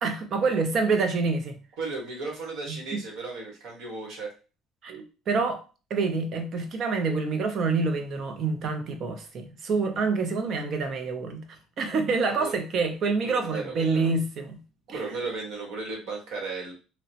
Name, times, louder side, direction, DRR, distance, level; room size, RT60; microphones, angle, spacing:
voice 1, 0.0-1.6 2.7-3.0 4.8-5.6 5.9-11.4 11.8-14.6 14.9-15.0, right 4 dB, 40° right, 0.5 m, -27 dB
voice 2, 1.8-4.3 12.3-12.5 13.2-14.1 14.9-16.7, right 3 dB, 70° right, 1.2 m, -35 dB
2.9 x 2.0 x 2.7 m
cardioid pair, 160°, 0 cm